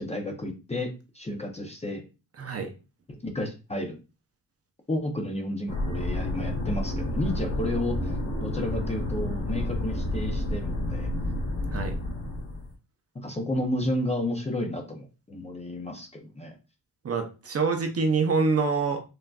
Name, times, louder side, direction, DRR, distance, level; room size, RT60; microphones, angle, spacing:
voice 1, 0.0-2.0 3.1-4.0 4.9-11.1 13.2-16.5, left 1 dB, 15° left, 2 dB, 0.5 m, -32 dB
voice 2, 2.4-2.7 11.7-11.9 17.0-19.0, right 4 dB, 40° right, 5 dB, 0.6 m, -25 dB
sound 1, 5.7-12.7, left 1 dB, 55° left, 1.7 m, -30 dB
5.7 x 2.5 x 2.3 m, 0.31 s
wide cardioid pair, 165°, 39 cm